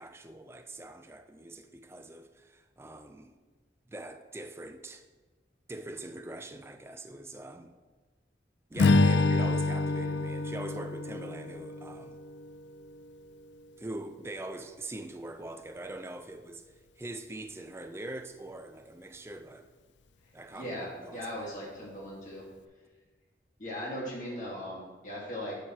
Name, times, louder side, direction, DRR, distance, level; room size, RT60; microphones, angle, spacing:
voice 1, 0.0-3.3 3.9-5.0 5.7-7.7 8.7-12.2 13.8-16.6 17.0-19.7 20.3-21.6, right 1 dB, 15° right, 0.4 m, -43 dB
Strum, 8.8-13.2, left 3 dB, 80° left, 0.5 m, -27 dB
voice 2, 20.5-22.4 23.6-25.6, equal, 45° left, 1.7 m, -38 dB
11.0 x 6.5 x 2.9 m
head